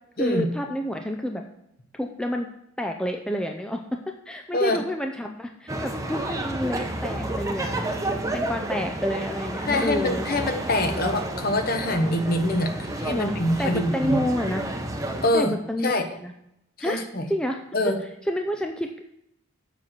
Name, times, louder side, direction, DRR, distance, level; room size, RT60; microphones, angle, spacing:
voice 1, 0.2-1.4 2.0-2.5 2.8-4.0 4.3-7.8 8.3-10.3 10.8-11.0 13.1-13.3 13.6-14.6 15.3-16.3 16.8-17.0 17.3-17.6 18.3-19.0, equal, 5° left, 3 dB, 0.5 m, -29 dB
sound 1, 5.7-15.3, right 1 dB, 15° right, 0.9 m, -30 dB
voice 2, 9.7-14.2 15.2-15.5 15.8-16.0 16.8-17.3 17.7-18.0, left 1 dB, 45° left, 6 dB, 1.2 m, -25 dB
7.4 x 6.0 x 7.7 m, 0.80 s
head